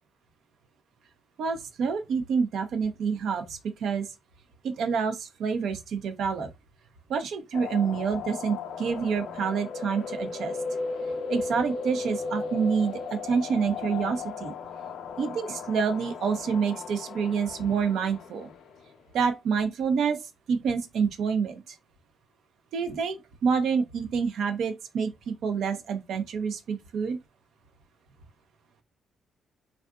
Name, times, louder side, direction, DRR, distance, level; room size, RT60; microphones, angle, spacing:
voice 1, 1.4-4.1 4.6-6.5 7.1-10.6 11.3-14.5 15.2-18.5 19.1-20.2 20.5-21.8 22.7-23.2 23.4-27.2, right 6 dB, 70° right, 0.6 m, -27 dB
sound 1, 7.5-18.8, left 4 dB, 75° left, 0.5 m, -36 dB
3.6 x 2.4 x 2.3 m
cardioid pair, 90°, 0 cm